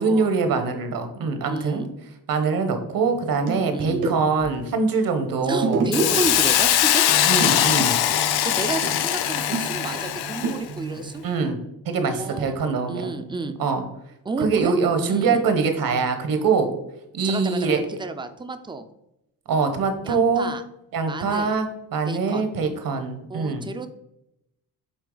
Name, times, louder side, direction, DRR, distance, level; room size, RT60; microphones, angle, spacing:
voice 1, 0.0-1.8 2.3-5.9 7.2-8.0 11.2-11.6 11.8-13.1 13.6-13.8 14.4-16.7 17.1-17.8 19.5-20.5 20.9-23.6, right 4 dB, 65° right, 7 dB, 1.1 m, -23 dB
voice 2, 1.5-1.9 3.7-4.0 5.4-7.1 8.4-11.2 12.0-12.6 12.9-13.6 14.2-14.7 15.0-15.5 17.2-18.9 20.0-20.6 21.1-21.6 22.0-22.5 23.3-23.9, right 3 dB, 15° right, 9 dB, 0.4 m, -31 dB
sound 1, 3.1-4.5 5.5-6.2 6.5-6.8 7.1-11.1, right 4 dB, 90° right, 2.0 m, -30 dB
Hiss, 5.9-10.6, left 12 dB, 85° left, 0.6 m, -21 dB
8.2 x 3.3 x 3.8 m, 0.84 s
cardioid pair, 145°, 37 cm